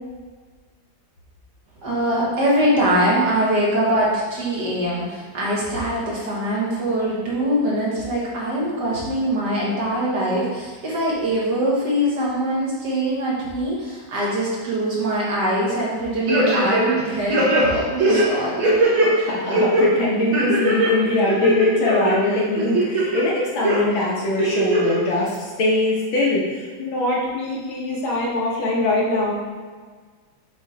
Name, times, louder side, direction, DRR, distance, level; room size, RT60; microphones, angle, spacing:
voice 1, 1.8-18.6, right 1 dB, 60° right, -5 dB, 2.0 m, -23 dB
sound 1, 16.3-17.0 17.3-19.1 19.5-19.8 20.3-20.9 21.3-22.1 22.6-23.2 23.6-23.8 24.4-25.0 25.3-25.4, right 1 dB, 75° right, 2.1 m, -19 dB
voice 2, 19.2-29.3, left 2 dB, 80° left, -4 dB, 2.1 m, -22 dB
7.1 x 3.2 x 4.1 m, 1.5 s
omnidirectional pair, 2.2 m